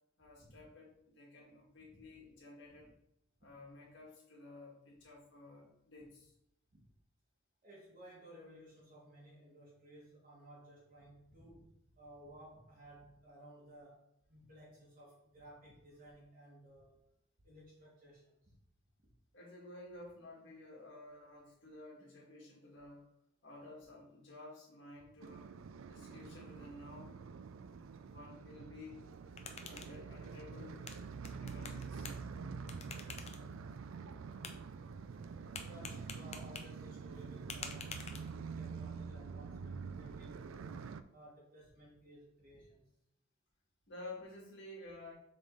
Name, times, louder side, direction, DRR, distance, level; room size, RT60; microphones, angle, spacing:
voice 1, 0.2-2.9 3.4-6.3 19.3-23.0 23.4-25.5 25.9-27.2 28.0-29.0 29.6-30.8 31.4-32.1 43.9-45.1, left 2 dB, 60° left, -3 dB, 2.1 m, -53 dB
voice 2, 7.6-14.0 14.3-17.0 17.4-18.5 19.0-19.1 35.5-38.0 38.5-40.7 41.1-42.9, right 1 dB, 40° right, -6 dB, 1.6 m, -57 dB
sound 1, 25.2-41.0, right 5 dB, 75° right, 0.4 m, -46 dB
sound 2, 29.0-38.7, left 5 dB, 30° left, 0.6 m, -51 dB
7.1 x 3.7 x 3.9 m, 0.77 s
head